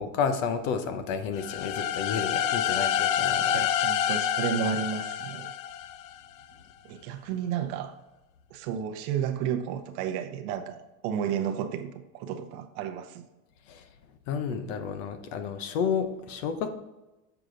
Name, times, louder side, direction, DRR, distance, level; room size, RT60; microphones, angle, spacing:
voice 1, 0.0-3.7 13.7-13.8 14.3-16.7, left 6 dB, 70° left, 9 dB, 0.9 m, -31 dB
sound 1, 1.4-6.2, left 10 dB, 50° left, 0.4 m, -28 dB
voice 2, 3.5-5.5 6.8-8.0 8.5-13.2, right 8 dB, 55° right, 8 dB, 0.8 m, -32 dB
7.0 x 4.8 x 3.8 m, 1.0 s
supercardioid pair, 160°, 39 cm